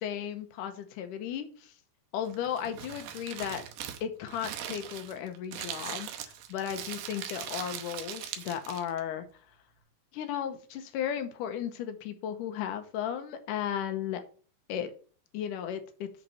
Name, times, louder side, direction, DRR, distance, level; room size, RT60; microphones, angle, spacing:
voice 1, 0.0-1.7 2.1-3.6 4.0-9.3 10.1-14.2 14.7-14.9 15.3-16.1, left 9 dB, 75° left, 8 dB, 2.0 m, -35 dB
Crumpling crinkling, 2.2-9.0, right 10 dB, 80° right, 2.8 m, -40 dB
8.4 x 4.1 x 5.6 m, 0.41 s
omnidirectional pair, 4.6 m